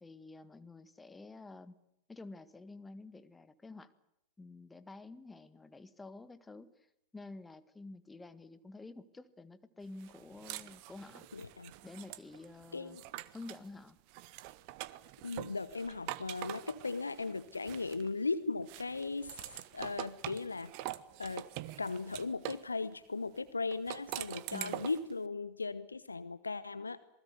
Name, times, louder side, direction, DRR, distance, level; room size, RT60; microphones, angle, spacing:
voice 1, 0.0-1.8 2.1-3.9 4.4-6.9 7.1-11.2 11.8-13.0 13.3-14.0 24.5-24.8, left 2 dB, 10° left, 13 dB, 1.7 m, -50 dB
sound 1, 10.0-13.7 14.1-18.3 18.7-22.7 23.7-25.1, right 16 dB, 45° right, 1.3 m, -45 dB
voice 2, 11.3-11.7 12.7-13.0 15.2-19.4 19.7-20.7 21.2-21.5 21.8-27.0, left 3 dB, 80° left, 15 dB, 1.0 m, -37 dB
27.0 x 20.5 x 8.2 m, 0.81 s
figure-of-eight pair, 90°, 0 cm